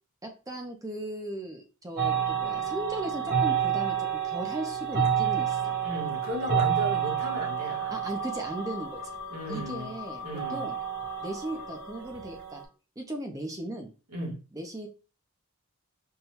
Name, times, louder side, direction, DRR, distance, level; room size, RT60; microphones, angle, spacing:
voice 1, 0.2-5.8 7.9-9.0 9.5-10.8 11.2-12.6 13.0-13.9 14.5-14.9, right 1 dB, 15° right, 0.5 m, -37 dB
sound 1, 2.0-12.6, right 8 dB, 45° right, 1.3 m, -30 dB
sound 2, 2.1-12.0, left 10 dB, 75° left, 0.4 m, -45 dB
voice 2, 5.8-8.0 9.3-9.9 10.2-10.7 14.1-14.4, right 1 dB, 85° right, 1.5 m, -35 dB
5.3 x 2.2 x 2.9 m
head